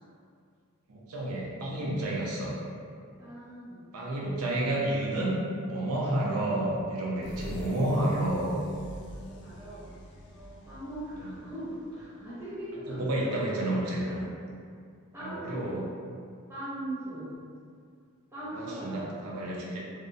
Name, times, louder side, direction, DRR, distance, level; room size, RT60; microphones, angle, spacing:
voice 1, 0.9-2.5 3.9-5.4 5.7-8.6 11.2-11.3 12.9-14.3 15.2-15.8 18.5-19.8, right 1 dB, 80° right, -4 dB, 0.6 m, -30 dB
voice 2, 3.2-3.9 8.9-9.9 10.3-14.3 15.1-15.8 16.5-17.3 18.3-19.1, right 1 dB, 10° right, -11 dB, 0.6 m, -40 dB
sound 1, 7.2-12.7, equal, 55° left, 0.3 m, -45 dB
2.7 x 2.0 x 2.5 m, 2.2 s
head